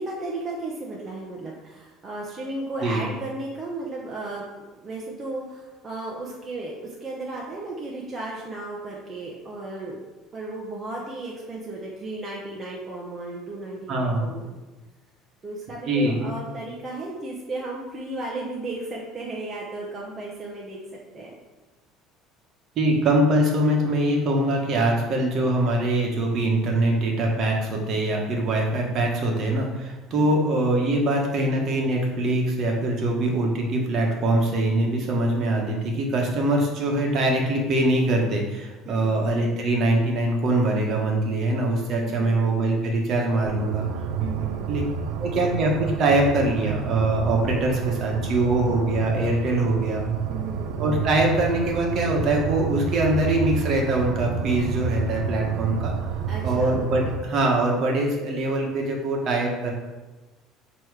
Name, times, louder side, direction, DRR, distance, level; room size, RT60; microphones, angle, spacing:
voice 1, 0.0-10.0 10.3-14.5 15.4-20.8 21.1-21.3 30.1-30.4 38.8-39.2 42.0-42.3 44.2-44.7 50.3-50.8 56.3-56.8, right 2 dB, 20° right, -4 dB, 0.8 m, -34 dB
voice 2, 13.9-14.2 15.9-16.3 22.8-43.9 44.7-44.8 45.2-50.0 50.8-55.9 56.4-59.7, right 1 dB, 40° right, 0 dB, 1.2 m, -23 dB
sound 1, 43.4-57.2, right 6 dB, 90° right, 0.5 m, -29 dB
6.9 x 3.0 x 4.7 m, 1.2 s
cardioid pair, 155°, 0 cm